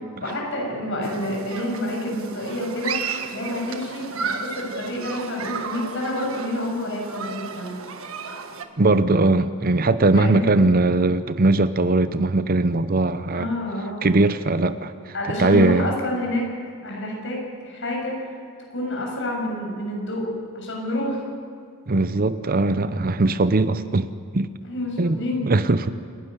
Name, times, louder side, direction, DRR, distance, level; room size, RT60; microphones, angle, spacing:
voice 1, 0.2-7.7 10.1-10.4 13.3-14.1 15.1-16.4 16.8-17.4 17.6-18.3 18.7-20.3 20.5-21.2 24.6-25.5, left 1 dB, 60° left, -1 dB, 7.2 m, -28 dB
Human group actions, 1.0-8.7, right 5 dB, 75° right, 1.5 m, -33 dB
voice 2, 8.8-13.5 14.0-14.9 15.4-15.9 21.9-24.5 25.0-25.2 25.4-25.9, right 2 dB, 45° right, 12 dB, 0.7 m, -20 dB
28.5 x 12.5 x 9.6 m, 2.1 s
head